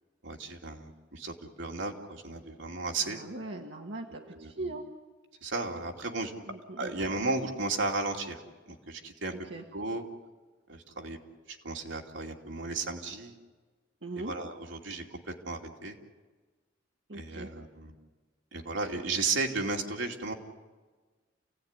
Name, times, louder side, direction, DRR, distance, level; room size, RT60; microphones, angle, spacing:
voice 1, 0.2-3.2 4.3-4.7 5.4-6.3 6.8-8.4 8.7-9.3 9.7-10.0 10.7-11.2 11.5-13.4 14.1-16.0 17.1-17.9 18.5-20.3, right 3 dB, 85° right, 1 dB, 2.8 m, -34 dB
voice 2, 3.0-4.8 6.5-6.9 9.5-9.6 14.0-14.3 17.1-17.5, right 2 dB, 65° right, 0 dB, 1.7 m, -40 dB
29.0 x 17.0 x 9.8 m, 1.3 s
head